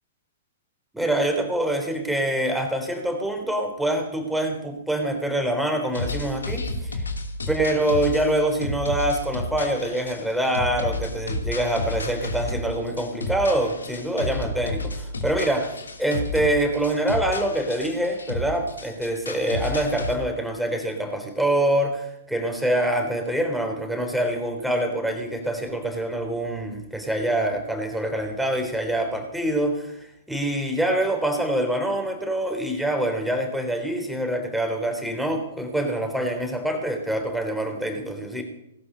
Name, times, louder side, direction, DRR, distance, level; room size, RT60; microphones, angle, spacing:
voice 1, 0.9-7.0 7.5-15.7 16.0-30.0 30.3-38.4, right 1 dB, ahead, 4 dB, 3.7 m, -25 dB
sound 1, 5.9-20.1, left 2 dB, 80° left, 2.8 m, -32 dB
18.5 x 11.0 x 6.9 m, 0.82 s
figure-of-eight pair, 115°, 0 cm